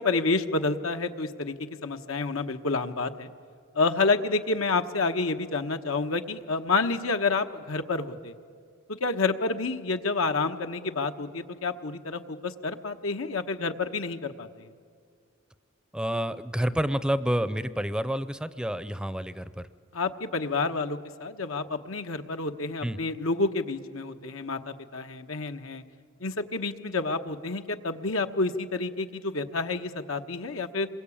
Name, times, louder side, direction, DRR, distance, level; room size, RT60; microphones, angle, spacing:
voice 1, 0.0-3.3 3.7-8.3 8.9-14.7 19.9-25.8 26.2-30.9, left 3 dB, 85° left, 7 dB, 1.3 m, -29 dB
voice 2, 15.9-19.6 22.8-23.0, equal, 5° right, 14 dB, 0.6 m, -29 dB
27.5 x 22.0 x 8.6 m, 2.2 s
head